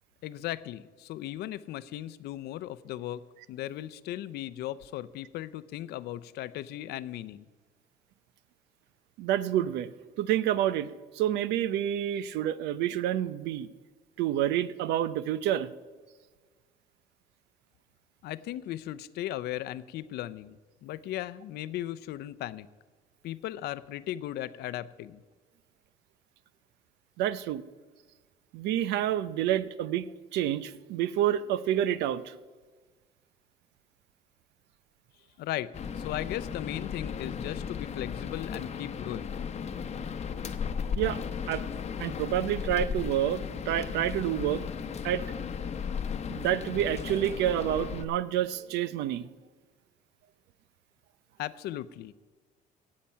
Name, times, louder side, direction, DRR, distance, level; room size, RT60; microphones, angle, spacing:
voice 1, 0.2-7.4 18.2-22.7 23.2-25.2 35.4-39.4 51.4-52.1, left 13 dB, 75° left, 15 dB, 0.6 m, -37 dB
voice 2, 9.2-9.9 10.2-13.7 14.2-15.7 27.2-27.6 28.5-32.4 41.0-41.2 41.5-41.6 42.0-44.6 45.0-45.2 46.3-49.3, right 11 dB, 85° right, 16 dB, 0.6 m, -28 dB
sound 1, 35.7-48.0, left 7 dB, 40° left, 0.9 m, -35 dB
17.5 x 7.5 x 5.6 m, 1.4 s
cardioid pair, 110°, 17 cm